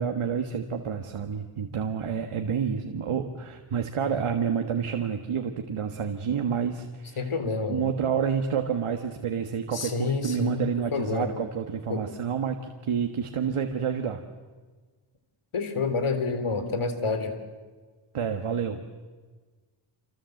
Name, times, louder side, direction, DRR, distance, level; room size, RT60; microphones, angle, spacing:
voice 1, 0.0-7.3 7.7-14.2 18.1-18.8, right 7 dB, 85° right, 5 dB, 1.7 m, -29 dB
voice 2, 7.2-7.9 9.7-11.3 11.9-12.0 15.5-17.3, left 4 dB, 80° left, 9 dB, 3.6 m, -28 dB
28.0 x 25.5 x 7.9 m, 1.4 s
wide cardioid pair, 75°, 50 cm